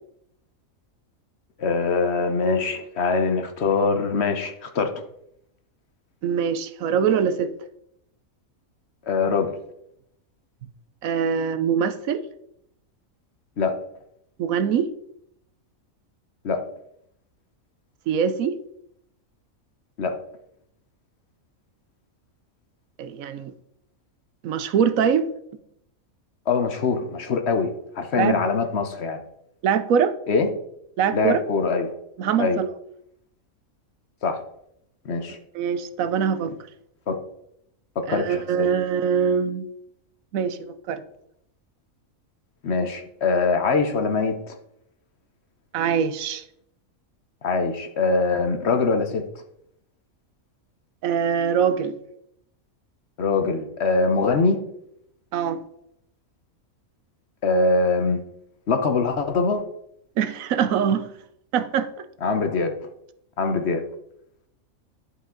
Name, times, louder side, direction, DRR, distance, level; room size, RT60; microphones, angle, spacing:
voice 1, 1.6-4.9 9.1-9.5 13.6-13.7 16.4-16.6 20.0-20.2 26.5-29.2 30.3-30.5 31.1-31.9 32.4-32.6 34.2-34.4 35.0-35.4 37.1-37.2 38.0-38.7 42.6-44.5 47.4-49.2 53.2-54.6 57.4-58.2 58.7-59.6 62.2-62.7 63.4-63.8, left 4 dB, 55° left, 1.1 m, -23 dB
voice 2, 6.2-7.5 11.0-12.2 14.4-14.9 18.1-18.6 23.0-23.5 24.4-25.3 28.1-28.4 29.6-30.2 31.0-31.4 32.2-32.7 35.5-36.6 38.1-39.7 40.3-41.0 45.7-46.4 51.0-52.0 55.3-55.6 60.2-61.1 61.5-62.1, right 7 dB, 80° right, 1.0 m, -23 dB
11.5 x 4.9 x 3.8 m
omnidirectional pair, 1.5 m